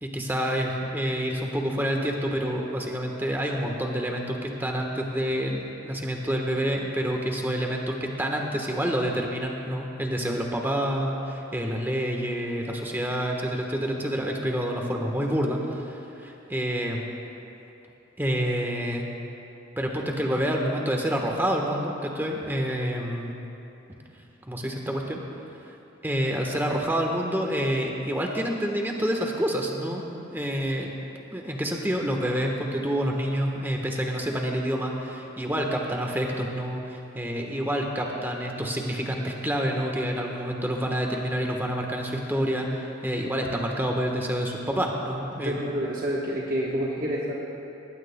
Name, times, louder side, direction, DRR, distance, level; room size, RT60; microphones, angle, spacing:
voice 1, 0.0-17.1 18.2-19.1 19.8-23.4 24.4-25.2 26.0-30.9 31.3-45.5, equal, 10° right, 1 dB, 1.2 m, -28 dB
voice 2, 45.4-47.3, equal, 45° right, -4 dB, 1.2 m, -28 dB
19.5 x 16.5 x 2.2 m, 2.9 s
head